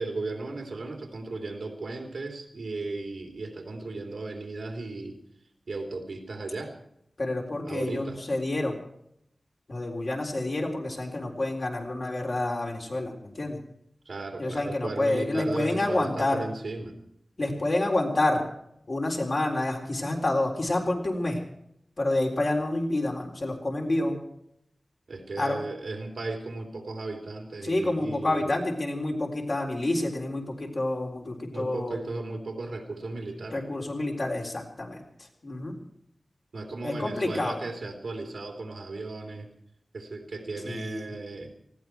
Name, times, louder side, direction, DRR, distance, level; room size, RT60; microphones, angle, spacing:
voice 1, 0.0-5.2 5.7-6.7 7.6-8.2 14.0-17.0 25.1-28.5 31.5-33.6 36.5-39.5 39.9-41.5, right 3 dB, 90° right, 3 dB, 3.1 m, -36 dB
voice 2, 7.2-8.8 9.7-13.6 14.4-16.4 17.4-18.4 18.9-21.4 22.0-24.2 25.4-25.6 27.6-32.0 33.5-35.0 35.4-35.8 36.8-37.6 40.6-41.1, left 2 dB, 55° left, 0 dB, 3.9 m, -28 dB
19.5 x 15.5 x 4.6 m, 0.73 s
wide cardioid pair, 85°, 0 cm